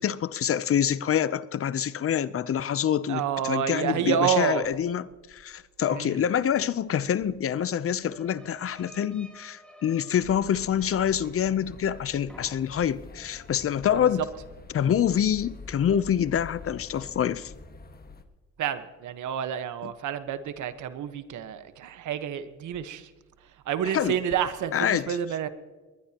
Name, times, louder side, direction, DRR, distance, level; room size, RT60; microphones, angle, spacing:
voice 1, 0.0-14.3 14.7-17.5 19.8-19.9 23.9-24.2 24.7-25.2, left 9 dB, 50° left, 0.7 m, -26 dB
voice 2, 3.1-4.6 5.9-6.2 13.9-14.1 18.6-23.1 23.7-25.5, right 9 dB, 75° right, 1.3 m, -29 dB
sound 1, 7.3-12.0 12.3-13.0, equal, 5° left, 3.1 m, -53 dB
sound 2, 10.2-18.2, left 4 dB, 30° left, 1.6 m, -46 dB
21.0 x 20.5 x 3.0 m
cardioid pair, 90°, 30 cm